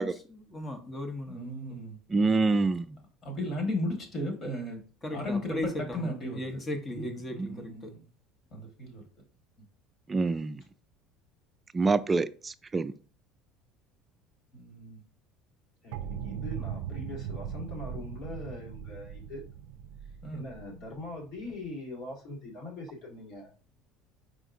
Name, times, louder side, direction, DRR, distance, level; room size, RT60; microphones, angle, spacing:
voice 1, 0.0-1.7 5.0-7.9, left 1 dB, 20° left, 1.0 m, -37 dB
voice 2, 1.3-2.0 3.2-4.8 5.1-5.6 5.9-6.4 6.9-8.1 8.5-9.0 14.5-15.0 20.2-20.4, left 1 dB, 35° left, 1.7 m, -35 dB
voice 3, 2.1-3.0 7.4-7.6 10.1-10.6 11.7-12.9, right 3 dB, 20° right, 0.3 m, -26 dB
voice 4, 15.8-19.4 20.3-23.5, left 2 dB, 65° left, 2.4 m, -42 dB
sound 1, 15.9-21.6, right 9 dB, 85° right, 0.4 m, -39 dB
4.9 x 3.9 x 2.7 m
cardioid pair, 130°, 0 cm